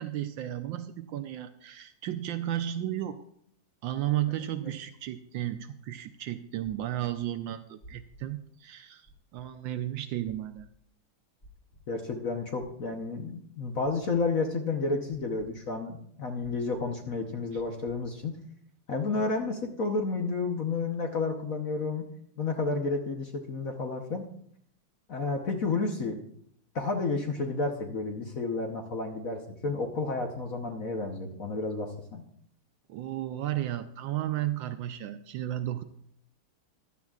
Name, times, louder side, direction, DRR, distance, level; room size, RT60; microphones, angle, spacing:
voice 1, 0.0-3.2 3.8-10.7 17.5-17.6 32.9-35.8, right 12 dB, 75° right, 9 dB, 1.2 m, -33 dB
sound 1, 6.6-7.0 7.8-8.2 9.1-9.5 10.2-10.6 11.4-11.8 12.6-13.0 13.8-14.2 15.1-15.5 16.4-16.8 17.6-18.0, right 1 dB, 30° left, 1.5 m, -53 dB
voice 2, 11.9-18.4 18.9-22.1 22.4-24.2 25.1-26.2 26.7-32.2, left 3 dB, 55° left, 3 dB, 1.1 m, -31 dB
15.5 x 11.5 x 2.4 m, 0.68 s
omnidirectional pair, 2.3 m